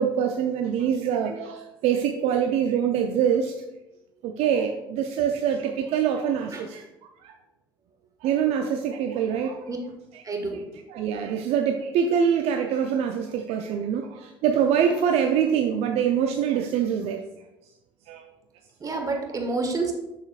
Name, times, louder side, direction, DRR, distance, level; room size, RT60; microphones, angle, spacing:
voice 1, 0.0-3.5 4.2-6.8 7.2-7.3 8.2-9.7 10.1-10.2 10.9-17.2 18.1-18.3 18.8-18.9 19.8-19.9, right 8 dB, 60° right, 5 dB, 0.5 m, -24 dB
voice 2, 10.2-10.6 18.8-19.9, right 3 dB, 30° right, 3 dB, 1.5 m, -28 dB
7.0 x 6.8 x 2.4 m, 0.94 s
hypercardioid pair, 60°, 12 cm